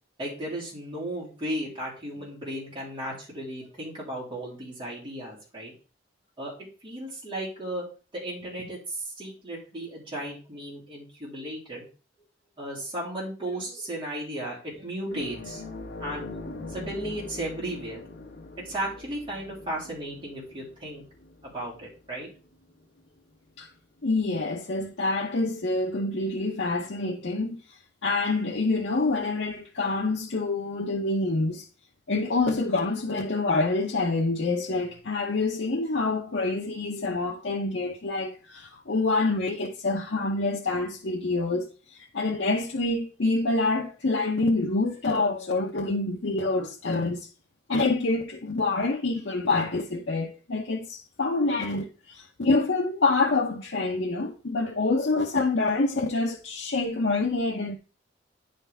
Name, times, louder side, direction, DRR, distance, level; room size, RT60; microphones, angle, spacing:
voice 1, 0.2-5.7 6.4-6.5 6.8-7.8 8.1-11.9 12.6-15.6 16.0-16.3 16.7-18.0 18.6-21.0 21.4-22.3, right 1 dB, 30° right, 3.0 m, -35 dB
sound 1, 15.1-24.0 24.4-24.6 26.6-26.7, left 2 dB, 55° left, 1.4 m, -43 dB
voice 2, 24.0-31.7 32.1-47.3 47.7-57.8, left 3 dB, 75° left, 0.8 m, -27 dB
10.0 x 4.0 x 3.4 m
head